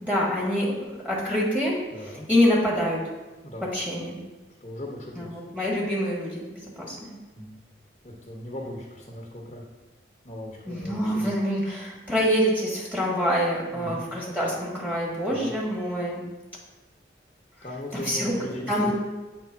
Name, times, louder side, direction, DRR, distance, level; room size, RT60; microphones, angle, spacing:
voice 1, 0.0-1.8 2.3-3.0 3.7-4.2 5.1-7.1 10.7-16.2 17.9-18.4 18.7-18.9, equal, 10° right, -5 dB, 1.4 m, -26 dB
voice 2, 1.9-2.3 3.4-3.7 4.6-5.4 7.3-7.6 8.0-9.6 10.2-11.3 13.7-14.0 15.3-15.5 17.6-18.9, left 1 dB, 35° left, -2 dB, 0.8 m, -38 dB
8.1 x 3.2 x 4.5 m, 1.2 s
head